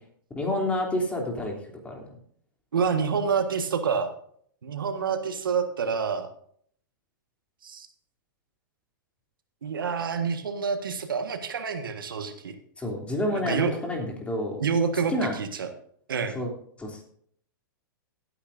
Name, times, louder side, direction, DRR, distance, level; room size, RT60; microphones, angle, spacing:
voice 1, 0.4-1.5 1.8-2.0 12.8-14.6 15.1-15.3 16.3-16.5 16.8-17.0, left 1 dB, 10° left, 1 dB, 3.0 m, -28 dB
voice 2, 2.7-4.1 4.6-6.3 7.6-7.9 9.6-12.6 13.3-13.7 14.6-15.7 16.1-16.4, right 6 dB, 85° right, 7 dB, 1.6 m, -27 dB
16.5 x 9.9 x 2.6 m, 0.62 s
hypercardioid pair, 125°, 11 cm